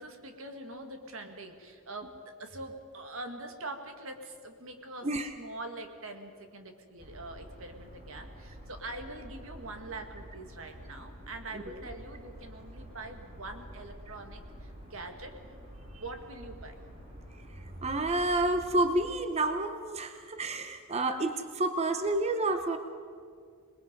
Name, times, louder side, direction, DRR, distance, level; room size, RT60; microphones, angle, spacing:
voice 1, 0.0-15.4 15.8-16.8, right 2 dB, 70° right, 5 dB, 2.0 m, -44 dB
sound 1, 7.0-19.1, equal, 45° right, 7.9 m, -48 dB
voice 2, 17.8-22.8, right 2 dB, 30° right, 8 dB, 0.8 m, -29 dB
26.5 x 20.0 x 5.2 m, 2.2 s
head